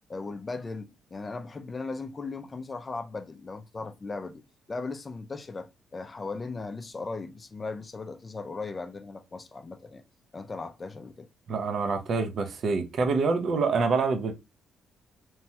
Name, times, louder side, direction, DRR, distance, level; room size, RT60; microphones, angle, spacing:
voice 1, 0.1-4.4 4.7-10.0 10.3-11.3, left 3 dB, 30° left, 0.3 m, -37 dB
voice 2, 11.5-14.3, right 4 dB, 55° right, 0.5 m, -26 dB
3.0 x 2.2 x 2.8 m
cardioid pair, 90°, 0 cm